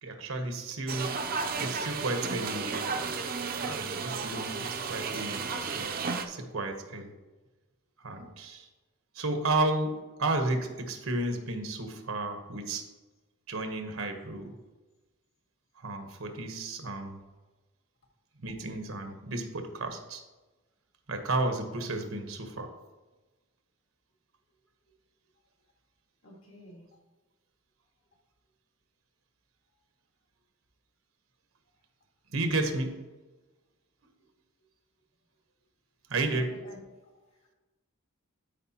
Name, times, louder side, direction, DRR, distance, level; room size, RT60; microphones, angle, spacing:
voice 1, 0.0-1.2 1.6-3.0 3.6-5.9 6.3-7.1 8.0-8.7 9.1-12.9 13.5-14.5 15.8-17.2 18.4-20.2 21.1-22.7 32.3-33.0 36.1-36.5, right 2 dB, 80° right, 6 dB, 1.1 m, -32 dB
sound 1, 0.9-6.3, right 5 dB, 45° right, 0.6 m, -33 dB
voice 2, 26.2-26.9 36.3-36.8, left 1 dB, 75° left, -1 dB, 2.2 m, -48 dB
12.0 x 4.8 x 2.9 m, 1.2 s
head